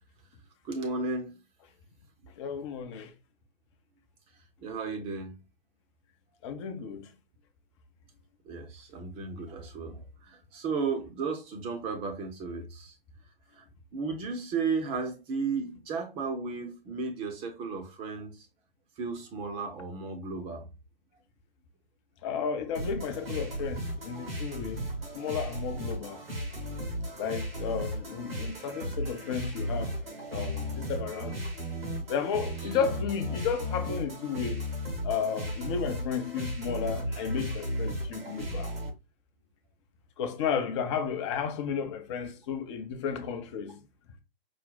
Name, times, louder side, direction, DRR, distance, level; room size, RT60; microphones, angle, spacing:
voice 1, 0.6-1.4 4.6-5.3 8.5-12.9 13.6-13.7 13.9-18.5 19.0-20.7, right 4 dB, 20° right, 0.8 m, -34 dB
voice 2, 2.4-3.1 6.4-7.1 22.2-26.2 27.2-30.0 30.3-31.4 32.1-34.6 35.0-38.7 40.2-43.8, left 6 dB, 30° left, 0.7 m, -33 dB
sound 1, 22.7-38.9, equal, 80° right, 2.1 m, -35 dB
5.0 x 2.1 x 3.9 m
figure-of-eight pair, 130°, 29 cm